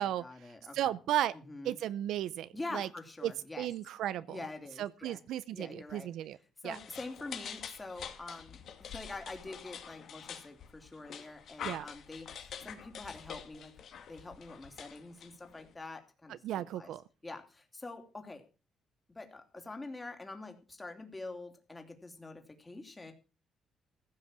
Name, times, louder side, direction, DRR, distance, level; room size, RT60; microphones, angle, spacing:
voice 1, 0.0-0.9 1.3-1.8 2.5-3.7 4.3-5.2 5.5-6.1 6.6-13.7 14.1-16.9 17.2-18.4 19.1-23.1, left 2 dB, 20° left, 3.1 m, -45 dB
voice 2, 0.7-1.3 1.6-2.9 3.2-3.3 3.6-4.4 4.8-6.4 6.6-6.8 11.6-11.9 16.4-17.0, right 12 dB, 85° right, 0.6 m, -34 dB
sound 1, 6.7-15.7, left 8 dB, 65° left, 2.4 m, -46 dB
15.5 x 6.5 x 7.4 m
cardioid pair, 90°, 0 cm